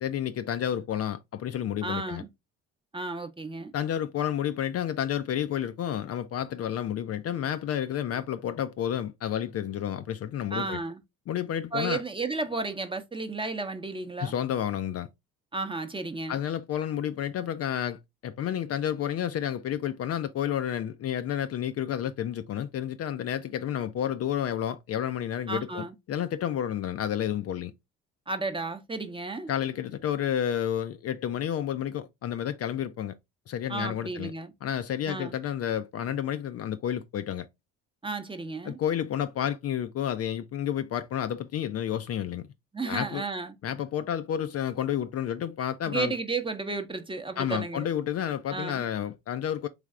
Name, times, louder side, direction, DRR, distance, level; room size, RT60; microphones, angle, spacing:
voice 1, 0.0-2.2 3.7-10.8 11.3-12.0 14.2-15.1 16.3-27.7 29.5-33.1 33.5-34.3 34.6-37.5 38.6-42.5 42.9-43.2 43.6-46.1 47.4-49.7, left 10 dB, 45° left, 0.4 m, -30 dB
voice 2, 1.8-2.3 2.9-3.7 10.5-11.0 11.7-14.3 15.5-16.4 25.5-25.9 28.3-29.5 33.7-34.5 35.1-35.3 38.0-38.8 42.7-43.5 45.9-47.9 48.5-48.8, right 3 dB, 15° right, 0.8 m, -33 dB
3.3 x 3.1 x 3.6 m
hypercardioid pair, 65°, 34 cm